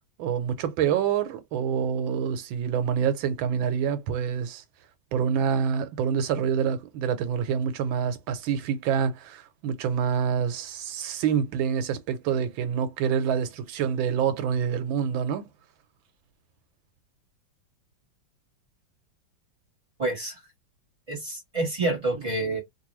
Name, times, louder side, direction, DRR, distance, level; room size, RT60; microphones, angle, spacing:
voice 1, 0.2-4.6 5.1-15.4, right 7 dB, 90° right, 1.4 m, -26 dB
voice 2, 20.0-20.4 21.1-22.6, right 2 dB, 20° right, 1.4 m, -28 dB
3.1 x 2.6 x 3.0 m
omnidirectional pair, 2.1 m